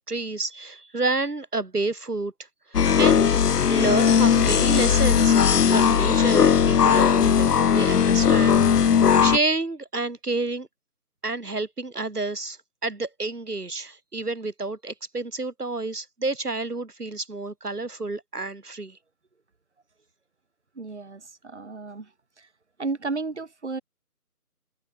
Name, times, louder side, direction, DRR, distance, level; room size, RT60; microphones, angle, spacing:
voice 1, 0.0-2.3 3.0-3.3 3.7-5.4 5.6-10.7 11.2-19.0, right 3 dB, 80° right, 2.4 m, -29 dB
sound 1, 2.7-9.4, left 7 dB, 85° left, 0.6 m, -18 dB
voice 2, 20.8-22.1 22.4-22.5 22.8-23.8, right 3 dB, 45° right, 6.2 m, -33 dB
figure-of-eight pair, 160°, 46 cm